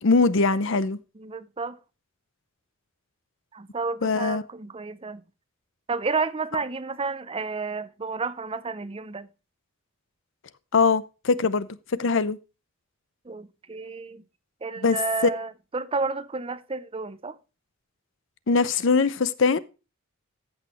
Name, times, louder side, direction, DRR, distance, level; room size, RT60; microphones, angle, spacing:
voice 1, 0.0-1.0 4.0-4.4 10.7-12.4 14.8-15.0 18.5-19.6, left 4 dB, 65° left, 0.7 m, -22 dB
voice 2, 1.2-1.8 3.5-5.2 5.9-9.3 13.2-14.2 14.6-17.4, right 4 dB, 25° right, 0.6 m, -31 dB
14.0 x 6.3 x 3.1 m
head